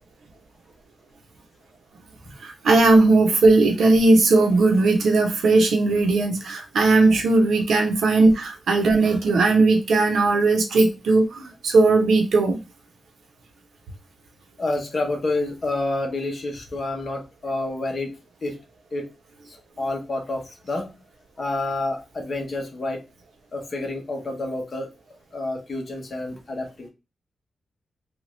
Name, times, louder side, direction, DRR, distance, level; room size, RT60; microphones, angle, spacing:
voice 1, 2.4-12.6, right 3 dB, 85° right, 4 dB, 0.9 m, -18 dB
voice 2, 14.6-18.6 18.9-19.1 19.8-20.9 21.4-23.0 23.5-24.9 25.3-26.9, left 2 dB, 35° left, 2 dB, 0.8 m, -28 dB
3.3 x 2.4 x 3.1 m, 0.26 s
wide cardioid pair, 175°, 0 cm